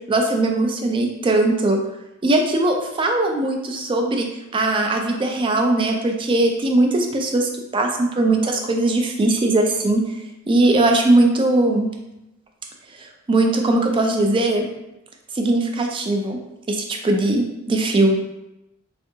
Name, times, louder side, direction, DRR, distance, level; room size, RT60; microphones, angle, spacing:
voice 1, 0.1-1.8 2.2-4.3 4.5-10.0 10.5-11.9 13.0-14.6 15.3-16.4 16.7-18.1, right 2 dB, 25° right, 3 dB, 0.3 m, -19 dB
3.5 x 2.4 x 2.7 m, 0.92 s
head